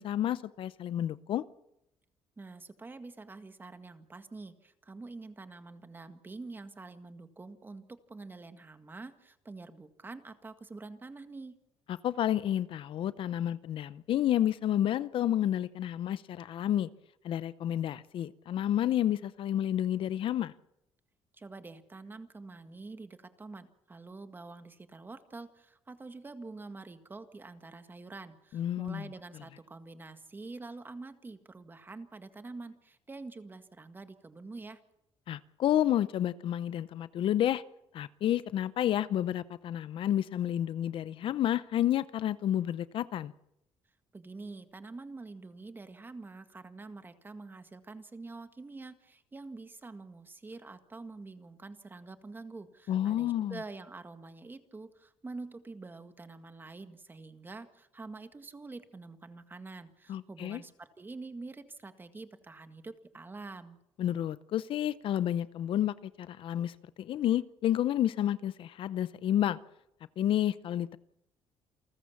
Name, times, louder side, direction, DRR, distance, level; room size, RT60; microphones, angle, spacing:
voice 1, 0.0-1.4 11.9-16.9 17.2-20.5 28.5-29.1 35.3-37.6 37.9-43.3 52.9-53.6 60.1-60.6 64.0-69.6 70.2-71.0, left 11 dB, 60° left, 0.7 m, -30 dB
voice 2, 2.4-11.6 21.3-34.8 44.1-63.8, right 3 dB, 20° right, 1.8 m, -46 dB
28.5 x 14.0 x 7.2 m
cardioid pair, 115°, 10 cm